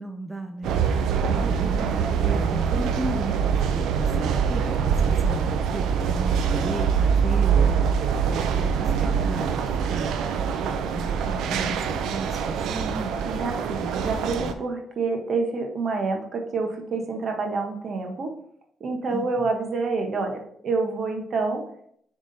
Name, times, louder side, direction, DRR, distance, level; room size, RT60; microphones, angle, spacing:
voice 1, 0.0-7.8 8.2-13.1 19.1-19.5, right 1 dB, 10° right, 4 dB, 0.6 m, -35 dB
sound 1, 0.6-14.5, right 7 dB, 85° right, 0.5 m, -24 dB
voice 2, 13.3-18.3 18.8-21.6, right 3 dB, 55° right, 3 dB, 1.3 m, -27 dB
6.5 x 3.6 x 4.1 m, 0.66 s
cardioid pair, 90°, 0 cm